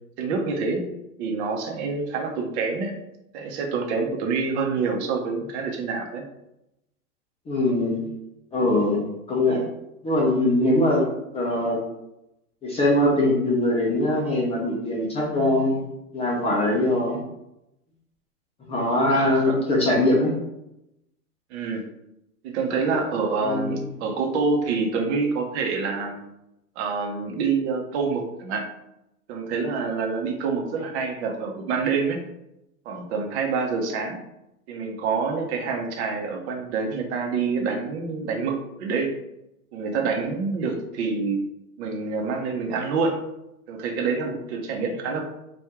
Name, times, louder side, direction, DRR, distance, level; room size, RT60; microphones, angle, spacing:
voice 1, 0.2-0.8 1.2-2.9 3.3-6.2 9.5-9.6 19.1-19.6 21.5-21.8 22.4-26.2 26.8-28.6 29.3-32.2 32.8-34.2 34.7-39.1 39.7-41.4 41.8-43.2 43.7-45.2, right 4 dB, 45° right, 2 dB, 0.9 m, -27 dB
voice 2, 7.5-8.1 8.5-9.6 10.0-11.1 11.3-11.8 12.6-15.8 16.1-17.2 18.7-20.3 23.4-23.8, left 1 dB, 15° left, -3 dB, 0.6 m, -22 dB
4.5 x 2.6 x 3.6 m, 0.86 s
hypercardioid pair, 120°, 46 cm